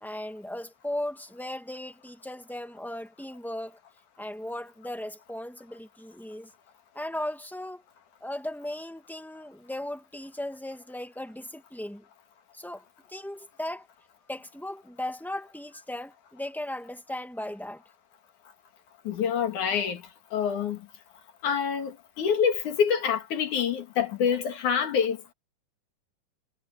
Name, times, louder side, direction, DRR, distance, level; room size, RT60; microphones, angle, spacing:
voice 1, 0.0-3.8 4.2-6.5 6.9-7.8 8.2-12.0 12.5-13.9 14.3-17.8, left 1 dB, ahead, 0.9 m, -37 dB
voice 2, 19.0-20.0 20.3-20.8 21.4-25.3, left 7 dB, 70° left, 3.4 m, -26 dB
omnidirectional pair, 3.7 m